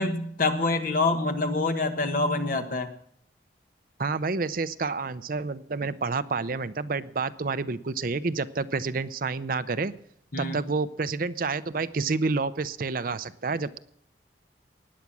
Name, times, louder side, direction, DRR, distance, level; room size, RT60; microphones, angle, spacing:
voice 1, 0.0-2.9 10.3-10.6, left 3 dB, 50° left, 7 dB, 1.3 m, -26 dB
voice 2, 4.0-9.9 10.4-13.8, right 4 dB, 50° right, 14 dB, 0.6 m, -29 dB
19.0 x 8.4 x 6.1 m, 0.65 s
head